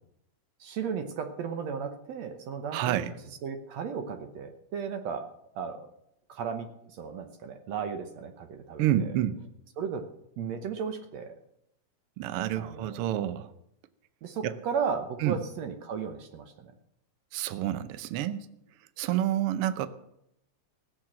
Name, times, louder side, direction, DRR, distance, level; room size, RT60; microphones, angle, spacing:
voice 1, 0.6-5.3 5.6-5.9 6.3-9.2 9.8-10.1 10.4-11.4 12.6-13.1 14.2-16.7, right 6 dB, 65° right, 7 dB, 2.1 m, -35 dB
voice 2, 2.7-3.1 8.8-9.4 12.2-13.5 14.4-14.5 15.2-15.3 17.3-18.5 19.0-19.9, right 12 dB, 85° right, 12 dB, 1.2 m, -28 dB
16.5 x 7.7 x 7.5 m, 0.79 s
omnidirectional pair, 3.5 m